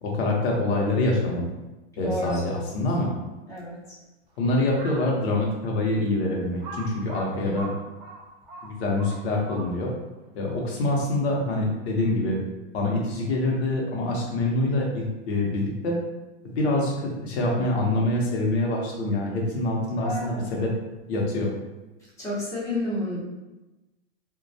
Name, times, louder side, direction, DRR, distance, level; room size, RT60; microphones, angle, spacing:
voice 1, 0.0-1.5 2.0-3.1 4.4-7.7 8.6-9.9 10.4-12.4 12.7-16.0 16.6-20.7 21.1-21.5, left 2 dB, 60° left, -2 dB, 0.8 m, -25 dB
voice 2, 2.0-2.8 3.5-3.7 7.4-7.6 20.0-20.5 22.2-23.2, left 1 dB, 10° left, -9 dB, 0.7 m, -31 dB
Crow, 4.7-5.1 5.7-5.8 6.6-10.0, right 3 dB, 35° right, 0.6 m, -40 dB
2.2 x 2.2 x 2.6 m, 1.1 s
supercardioid pair, 145°, 36 cm